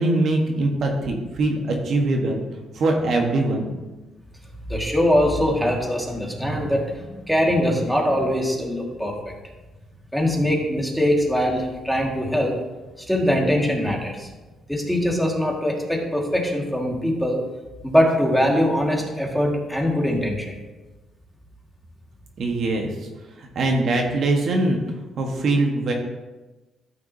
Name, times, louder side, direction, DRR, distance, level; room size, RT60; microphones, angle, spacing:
voice 1, 0.0-2.4 2.7-3.7 22.4-22.9 23.4-24.8 25.2-25.9, right 2 dB, 60° right, 1 dB, 1.3 m, -22 dB
voice 2, 4.7-9.3 10.1-12.6 13.0-14.3 14.7-17.4 17.8-20.6, equal, ahead, -1 dB, 1.8 m, -22 dB
13.5 x 5.9 x 2.7 m, 1.1 s
cardioid pair, 90°, 0 cm